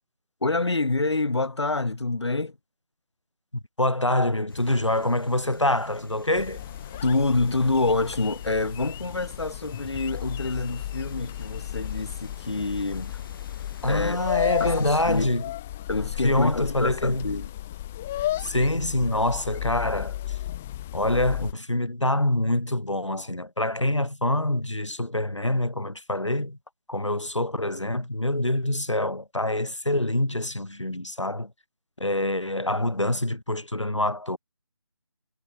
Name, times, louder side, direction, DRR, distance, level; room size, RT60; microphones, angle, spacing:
voice 1, 0.4-2.6 7.0-13.2 13.8-14.2 14.6-15.3 15.9-17.5, left 3 dB, 65° left, 2.0 m, -27 dB
voice 2, 3.8-6.6 13.8-15.5 16.2-17.3 18.4-20.4 20.9-26.6 26.9-31.5 32.0-34.4, left 1 dB, 90° left, 2.0 m, -25 dB
sound 1, 4.5-15.3, left 4 dB, 50° left, 8.0 m, -47 dB
sound 2, 6.4-21.5, left 13 dB, 5° left, 0.4 m, -34 dB
figure-of-eight pair, 155°, 15 cm